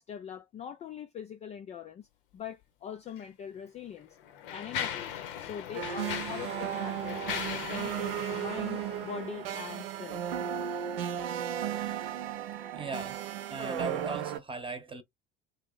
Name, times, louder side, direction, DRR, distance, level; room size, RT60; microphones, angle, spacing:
voice 1, 0.0-2.1 2.3-10.2, left 8 dB, 25° left, 0.3 m, -43 dB
Mechanisms, 3.1-3.2 4.0-9.7, left 9 dB, 60° left, 0.7 m, -39 dB
sound 1, 5.7-14.4, right 10 dB, 70° right, 0.6 m, -35 dB
voice 2, 12.7-13.2 13.5-15.0, right 3 dB, 15° right, 0.9 m, -38 dB
2.9 x 2.6 x 3.8 m
figure-of-eight pair, 60°, 30 cm